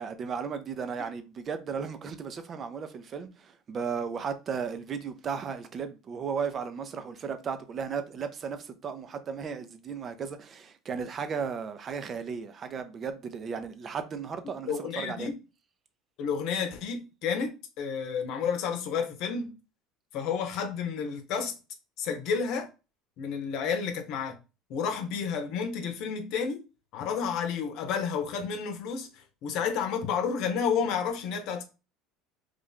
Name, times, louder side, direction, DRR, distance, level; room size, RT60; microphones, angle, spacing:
voice 1, 0.0-15.3, right 6 dB, 40° right, 0.6 m, -35 dB
voice 2, 14.7-15.4 16.2-19.5 20.1-21.5 22.0-22.7 23.2-24.4 24.7-26.6 26.9-31.6, left 6 dB, 65° left, 0.8 m, -31 dB
3.2 x 2.6 x 3.9 m
hypercardioid pair, 80°, 0 cm